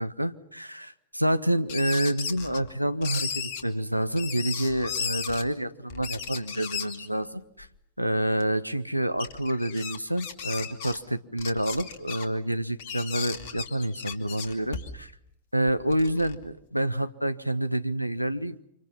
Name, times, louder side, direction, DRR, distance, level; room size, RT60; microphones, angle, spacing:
voice 1, 0.0-7.7 8.0-15.1 15.5-18.6, right 1 dB, 90° right, 13 dB, 1.0 m, -28 dB
sound 1, 1.7-2.7 3.0-3.6 4.2-5.4 5.9-7.1 7.6-7.7 8.4-8.5 9.2-11.0 11.4-12.2 12.8-15.1 15.7-16.5, left 6 dB, 50° left, 2.6 m, -35 dB
29.0 x 26.5 x 5.6 m, 0.74 s
figure-of-eight pair, 90°, 0 cm